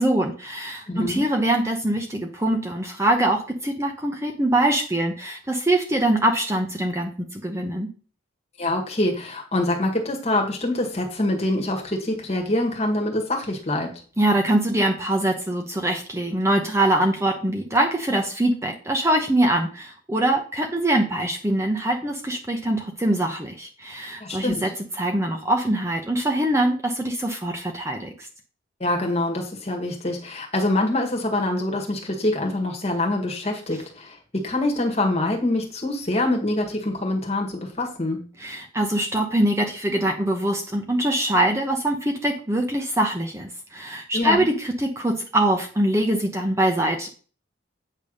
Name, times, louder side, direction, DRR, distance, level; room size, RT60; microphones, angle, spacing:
voice 1, 0.0-7.9 14.2-28.3 38.4-47.1, right 1 dB, 15° right, 2 dB, 0.9 m, -23 dB
voice 2, 0.9-1.2 8.6-13.9 24.2-24.7 28.8-38.3 44.1-44.5, left 1 dB, 30° left, 1 dB, 1.8 m, -25 dB
8.6 x 3.5 x 6.4 m, 0.39 s
head